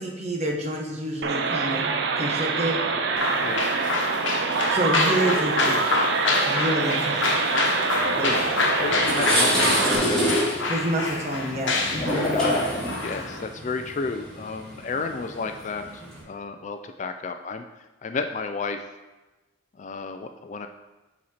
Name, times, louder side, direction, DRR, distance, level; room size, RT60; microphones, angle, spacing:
voice 1, 0.0-2.8 4.7-6.1 6.4-7.3 8.2-8.7 10.7-12.4, right 1 dB, 35° right, 1 dB, 1.0 m, -28 dB
some california mall, 1.2-10.0, right 4 dB, 60° right, 0.5 m, -25 dB
sound 1, 3.2-13.4, left 3 dB, 65° left, 1.1 m, -27 dB
voice 2, 3.4-3.7 8.2-8.5 8.8-10.2 12.3-12.7 13.0-17.6 18.0-18.8 19.8-20.7, left 4 dB, 35° left, 7 dB, 0.3 m, -32 dB
sound 2, 8.4-8.5 8.9-16.2, equal, 5° left, 2.2 m, -26 dB
7.4 x 4.2 x 4.3 m, 1.1 s
head